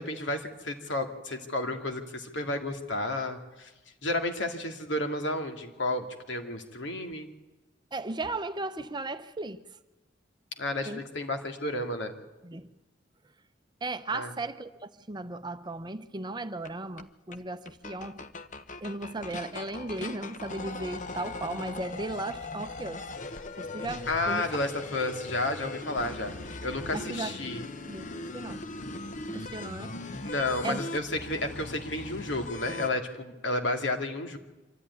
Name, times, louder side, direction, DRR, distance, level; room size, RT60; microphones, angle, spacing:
voice 1, 0.0-3.7 4.0-7.3 10.6-12.2 14.1-14.3 24.1-27.6 30.2-34.4, left 2 dB, 75° left, 2.3 m, -32 dB
voice 2, 7.9-9.6 10.9-11.0 12.4-12.7 13.8-18.3 18.8-23.1 23.6-24.5 26.3-26.4 26.9-27.3 27.9-28.1 28.3-28.6 29.3-29.9 30.6-30.8, right 2 dB, 25° right, 0.7 m, -36 dB
sound 1, 16.6-16.7 17.0-17.1 17.3-17.4 17.7-32.9, left 2 dB, 40° left, 0.9 m, -39 dB
25.0 x 13.5 x 9.6 m
head